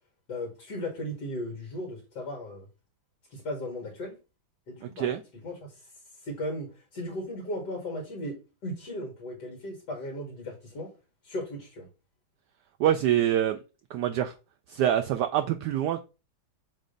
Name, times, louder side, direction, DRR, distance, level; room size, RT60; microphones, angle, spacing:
voice 1, 0.3-2.7 3.3-4.2 4.7-5.1 5.4-5.7 6.2-6.7 6.9-8.4 8.6-10.9 11.2-11.9, left 1 dB, 55° left, 2.1 m, -36 dB
voice 2, 12.8-13.6 13.9-14.3 14.7-16.0, right 11 dB, 80° right, 0.9 m, -25 dB
7.4 x 2.7 x 5.1 m
omnidirectional pair, 2.2 m